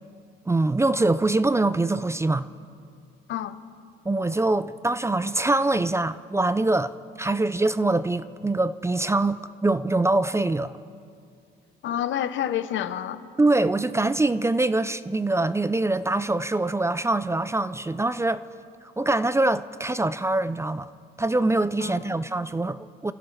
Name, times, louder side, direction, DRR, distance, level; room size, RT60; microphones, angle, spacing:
voice 1, 0.5-2.5 4.1-6.9 7.2-10.7 13.4-18.4 19.0-20.9 21.2-23.1, right 2 dB, 15° right, 0.4 m, -24 dB
voice 2, 3.3-3.6 11.8-13.2 21.8-22.1, left 10 dB, 75° left, 0.8 m, -29 dB
28.5 x 15.0 x 3.3 m
cardioid pair, 90°, 20 cm